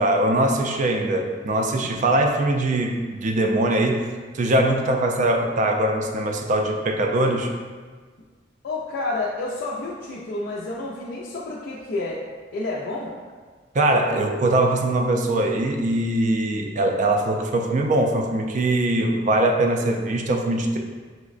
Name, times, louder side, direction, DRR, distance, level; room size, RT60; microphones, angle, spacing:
voice 1, 0.0-4.1 4.3-7.5 13.7-20.8, right 1 dB, 45° right, 3 dB, 0.3 m, -22 dB
voice 2, 1.7-2.1 8.6-12.2 12.5-13.1, left 2 dB, 70° left, -5 dB, 0.4 m, -30 dB
5.4 x 2.0 x 2.4 m, 1.5 s
head